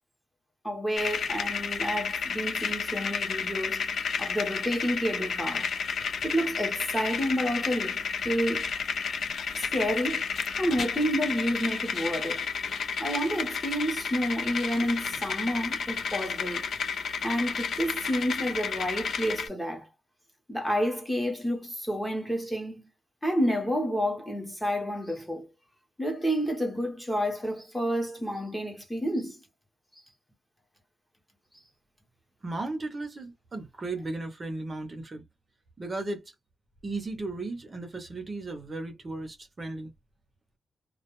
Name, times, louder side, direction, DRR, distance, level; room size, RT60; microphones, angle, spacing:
voice 1, 0.6-3.9 4.2-5.7 6.2-8.7 9.5-10.3 10.6-12.5 13.0-16.7 17.2-19.9 20.5-22.9 23.2-25.5 26.0-29.4 29.9-30.0, equal, 10° left, 0.8 m, -30 dB
sound 1, 1.0-19.5, left 6 dB, 60° left, 0.4 m, -32 dB
voice 2, 32.4-35.2 35.8-36.2 36.8-39.9, right 2 dB, 30° right, 0.6 m, -35 dB
2.2 x 2.1 x 2.9 m
wide cardioid pair, 180°, 0 cm